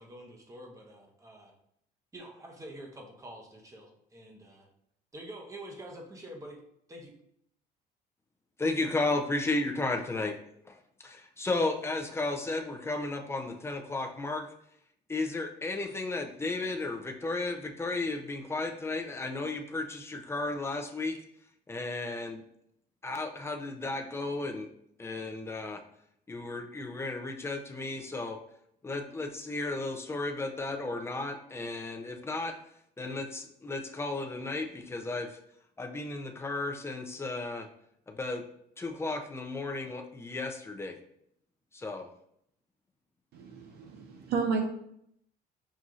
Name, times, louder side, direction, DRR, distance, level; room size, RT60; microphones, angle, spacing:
voice 1, 0.0-1.5 2.1-4.7 5.1-6.6 6.9-7.1, right 1 dB, 20° right, 1 dB, 0.9 m, -46 dB
voice 2, 8.6-10.4 10.6-14.5 15.1-21.2 21.7-22.4 23.0-24.7 25.0-25.8 26.3-28.4 28.8-32.5 33.0-35.4 35.8-37.7 38.1-38.4 38.8-41.0 41.7-42.1, left 2 dB, 15° left, 3 dB, 0.5 m, -34 dB
voice 3, 43.3-44.6, right 5 dB, 70° right, 3 dB, 0.8 m, -32 dB
6.1 x 2.7 x 2.4 m, 0.73 s
cardioid pair, 110°, 17 cm